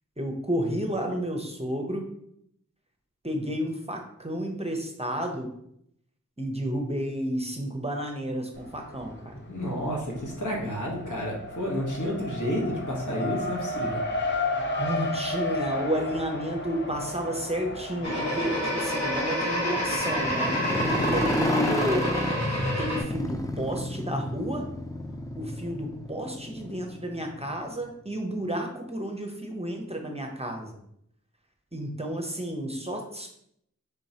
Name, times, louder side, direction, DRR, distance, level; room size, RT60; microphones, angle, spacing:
voice 1, 0.2-2.1 3.2-5.5 6.4-9.4 14.6-20.6 21.1-22.1 22.8-24.7 25.4-30.8 31.7-33.3, equal, 20° right, 2 dB, 0.7 m, -31 dB
Race car auto racing, 8.5-9.3 9.6-21.0, left 2 dB, 35° left, 0.8 m, -34 dB
voice 2, 9.5-14.0 20.7-21.1, equal, 70° left, -2 dB, 1.2 m, -31 dB
sound 1, 18.0-23.0, equal, 55° left, 1.3 m, -28 dB
Motorcycle, 19.8-27.8, left 1 dB, 10° left, 0.4 m, -31 dB
4.5 x 3.7 x 2.8 m, 0.72 s
wide cardioid pair, 60°, 32 cm